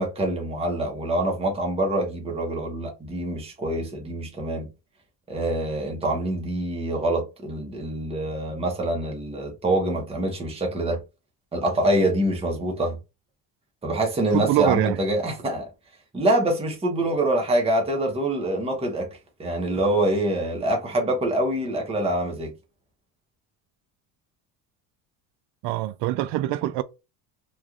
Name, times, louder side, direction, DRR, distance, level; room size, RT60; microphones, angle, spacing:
voice 1, 0.0-4.7 5.3-11.0 11.5-13.0 13.8-15.7 16.1-22.5, right 1 dB, 15° right, 0.9 m, -25 dB
voice 2, 14.3-15.0 25.6-26.8, right 15 dB, 70° right, 0.5 m, -24 dB
3.2 x 2.4 x 2.4 m
cardioid pair, 115°, 42 cm